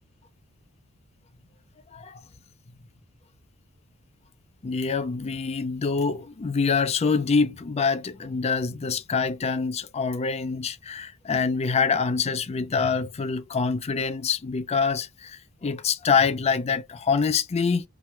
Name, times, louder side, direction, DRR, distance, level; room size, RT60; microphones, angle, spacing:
voice 1, 4.6-17.8, left 5 dB, 30° left, 0.4 m, -25 dB
3.1 x 2.2 x 2.7 m
head